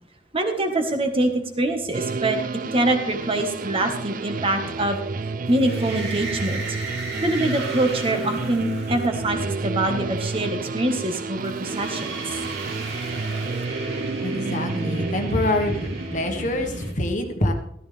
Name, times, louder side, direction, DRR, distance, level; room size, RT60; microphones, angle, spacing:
voice 1, 0.3-2.4 2.7-5.0 5.5-6.6 7.2-12.2, right 1 dB, 30° right, 5 dB, 1.4 m, -24 dB
sound 1, 1.9-16.3, right 3 dB, 50° right, 0.5 m, -31 dB
sound 2, 5.5-9.9 11.4-16.9, right 2 dB, 70° right, 2.6 m, -33 dB
voice 2, 14.2-15.7 16.1-17.5, left 1 dB, 45° left, 5 dB, 1.4 m, -25 dB
14.0 x 12.5 x 3.4 m, 0.71 s
head